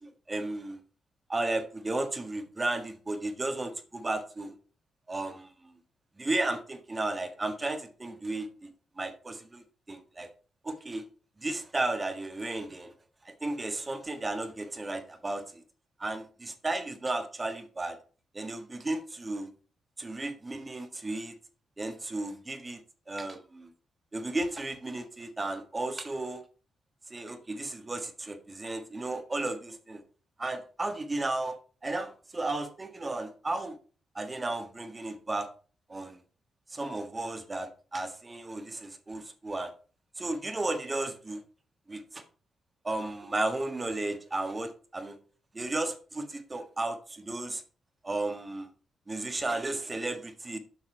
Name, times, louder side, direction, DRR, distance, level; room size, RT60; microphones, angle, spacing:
voice 1, 0.0-0.8 1.3-4.5 5.1-5.7 6.2-8.7 9.0-10.3 10.6-11.0 11.4-12.9 13.2-15.6 16.0-18.0 18.3-19.5 20.0-21.4 21.8-22.8 23.1-23.7 24.1-26.4 27.1-30.0 30.4-31.6 31.8-33.8 34.1-35.5 35.9-36.2 36.7-39.7 40.2-41.4 41.9-42.2 42.8-45.2 45.5-47.6 48.0-48.7 49.1-50.6, right 2 dB, 30° right, 7 dB, 1.6 m, -34 dB
7.3 x 5.9 x 4.5 m, 0.38 s
supercardioid pair, 55°, 0 cm